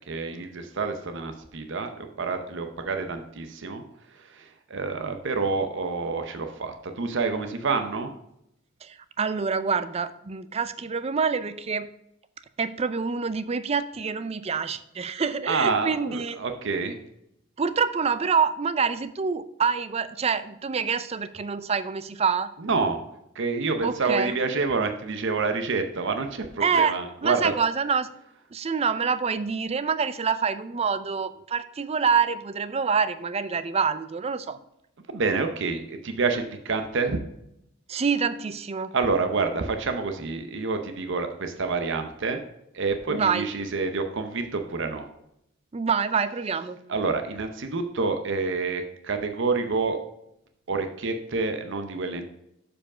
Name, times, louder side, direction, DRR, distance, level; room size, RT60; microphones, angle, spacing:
voice 1, 0.1-3.8 4.2-8.1 15.5-16.9 22.6-23.0 23.3-27.5 35.1-37.2 38.9-42.4 42.7-45.1 46.9-50.0 50.7-52.2, right 4 dB, 60° right, 7 dB, 0.7 m, -28 dB
voice 2, 8.8-11.9 12.6-16.4 17.6-22.5 23.8-24.4 26.6-28.1 28.5-34.6 37.9-38.9 43.1-43.5 45.7-46.8, right 5 dB, 30° right, 13 dB, 0.4 m, -26 dB
7.1 x 5.0 x 4.9 m, 0.79 s
head